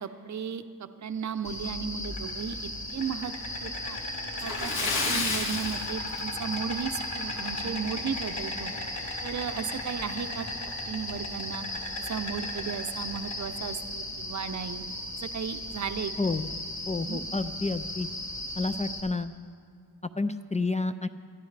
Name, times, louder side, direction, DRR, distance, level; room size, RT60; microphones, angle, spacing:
voice 1, 0.0-3.3 3.6-4.0 4.4-4.7 5.0-8.7 9.2-10.5 10.8-11.6 12.0-14.8 15.2-16.1 17.0-17.2, right 7 dB, 45° right, 9 dB, 0.7 m, -35 dB
Insect, 1.4-19.0, left 1 dB, 45° left, 3.3 m, -36 dB
Splash splatter, 4.3-6.7 7.0-7.2 7.6-7.7 9.2-9.3 9.6-9.7 10.3-10.6, left 3 dB, 60° left, 2.0 m, -30 dB
voice 2, 16.9-18.1 18.6-19.3 20.2-21.1, left 3 dB, 20° left, 10 dB, 0.3 m, -29 dB
24.0 x 13.5 x 3.3 m, 2.2 s
wide cardioid pair, 100°, 40 cm